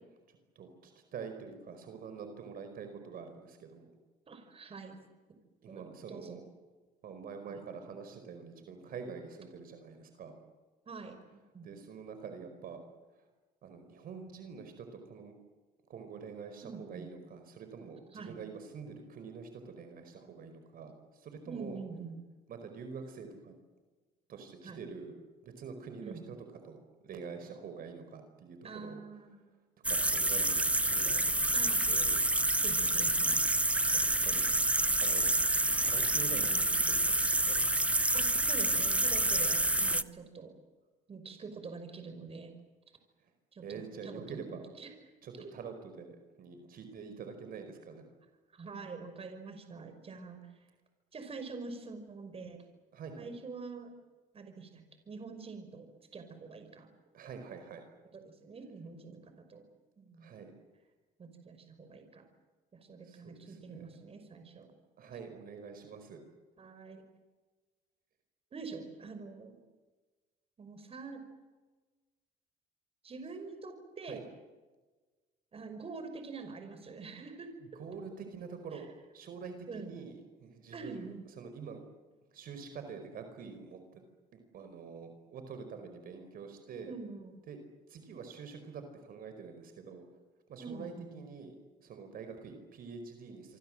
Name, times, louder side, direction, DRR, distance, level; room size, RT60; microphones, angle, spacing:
voice 1, 0.3-3.9 5.6-6.4 7.0-10.4 11.6-12.8 13.1-13.3 13.6-15.3 15.9-21.8 22.5-23.5 24.3-25.1 25.4-26.4 26.6-29.0 29.9-32.2 33.9-34.5 35.0-35.3 35.8-37.6 43.2-43.3 43.6-44.7 45.2-48.0 52.9-53.3 57.1-57.8 60.2-60.5 63.0-64.0 65.0-66.2 74.1-74.2 77.6-78.9 79.1-81.8 82.3-84.0 84.3-86.9 87.5-87.6 87.9-90.0 90.5-91.5 91.8-93.6, right 5 dB, 60° right, 7 dB, 4.9 m, -46 dB
voice 2, 4.3-5.0 5.7-6.4 7.5-7.6 10.9-11.7 16.6-17.1 18.1-18.4 21.5-22.2 24.6-24.8 26.0-26.2 28.6-29.4 31.5-31.8 32.6-33.4 36.3-36.7 38.1-40.5 41.1-42.5 43.5-44.9 45.4-45.5 48.5-50.4 51.1-52.6 53.2-53.9 54.3-56.9 58.1-59.6 60.0-60.3 61.2-62.2 62.7-64.7 66.6-67.0 68.5-69.6 70.6-71.2 73.0-74.2 75.5-77.5 78.7-78.8 79.7-79.9 80.7-81.2 86.9-87.4 90.6-91.1, right 4 dB, 35° right, 7 dB, 5.6 m, -45 dB
sound 1, 29.8-40.0, right 1 dB, 5° right, 0.8 m, -28 dB
27.0 x 24.5 x 7.8 m, 1.3 s
cardioid pair, 110°, 17 cm